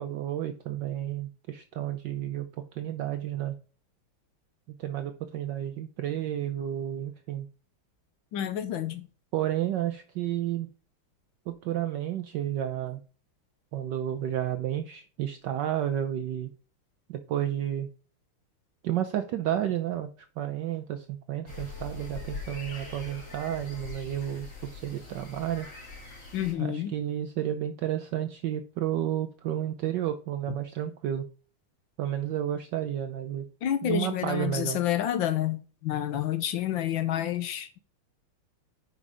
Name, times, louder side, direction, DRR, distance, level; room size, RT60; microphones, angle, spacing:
voice 1, 0.0-3.5 4.8-7.5 9.3-10.7 11.5-13.0 13.7-16.5 17.1-17.9 18.8-20.1 20.4-24.5 24.7-25.7 26.6-31.2 32.0-33.5 33.8-34.8, right 11 dB, 70° right, 1.1 m, -31 dB
voice 2, 8.3-9.1 26.3-26.9 33.6-37.8, left 11 dB, 70° left, 1.4 m, -29 dB
sound 1, 21.5-26.5, left 3 dB, 35° left, 2.4 m, -42 dB
6.0 x 5.3 x 5.4 m
omnidirectional pair, 2.4 m